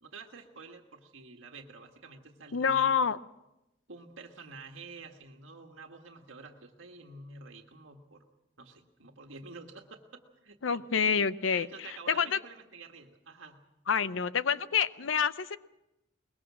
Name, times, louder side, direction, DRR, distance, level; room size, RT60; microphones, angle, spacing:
voice 1, 0.0-2.9 3.9-8.2 8.6-10.8 11.5-13.6, right 4 dB, 90° right, 2 dB, 1.6 m, -49 dB
voice 2, 2.5-3.2 10.6-11.7 12.1-12.4 13.9-15.6, left 6 dB, 90° left, 15 dB, 0.7 m, -27 dB
22.5 x 21.0 x 6.2 m, 0.93 s
head